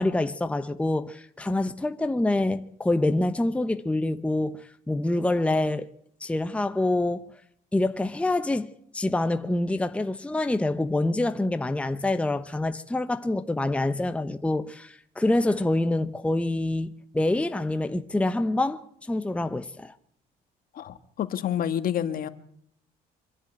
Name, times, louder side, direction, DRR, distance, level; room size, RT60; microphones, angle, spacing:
voice 1, 0.0-5.9 6.2-7.3 7.7-19.9, left 2 dB, 5° left, 0.9 m, -26 dB
voice 2, 20.7-22.3, left 10 dB, 60° left, 1.5 m, -28 dB
25.5 x 11.0 x 9.3 m
cardioid pair, 110°, 17 cm